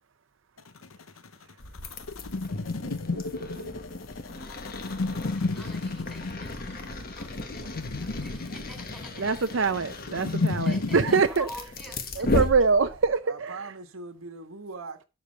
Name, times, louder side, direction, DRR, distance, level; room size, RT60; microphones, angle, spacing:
sound 1, 0.6-11.2, left 3 dB, 80° left, 0.8 m, -32 dB
sound 2, 1.6-13.2, left 2 dB, 45° left, 1.4 m, -35 dB
voice 1, 3.1-3.7 9.2-11.5 12.2-13.7, right 5 dB, 65° right, 0.6 m, -25 dB
voice 2, 5.3-9.2 10.3-12.3, equal, 5° left, 3.8 m, -46 dB
voice 3, 13.3-15.0, right 3 dB, 85° right, 1.4 m, -40 dB
12.0 x 5.2 x 6.6 m
head